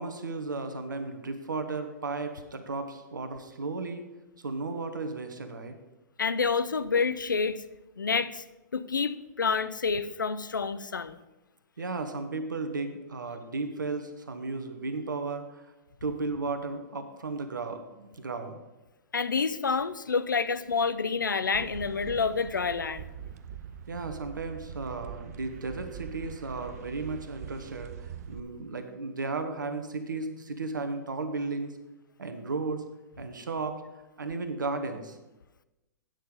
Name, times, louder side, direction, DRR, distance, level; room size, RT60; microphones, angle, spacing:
voice 1, 0.0-4.1 4.4-5.7 11.8-15.7 16.0-18.6 23.9-31.8 32.2-32.8 33.2-33.8 34.2-35.2, right 3 dB, 80° right, 8 dB, 1.2 m, -34 dB
voice 2, 6.2-7.6 8.0-8.4 8.7-11.2 19.1-23.0, left 5 dB, 85° left, 14 dB, 0.5 m, -28 dB
sound 1, 21.5-28.4, right 9 dB, 55° right, 0.5 m, -43 dB
9.2 x 6.6 x 5.2 m, 1.0 s
figure-of-eight pair, 110°, 10 cm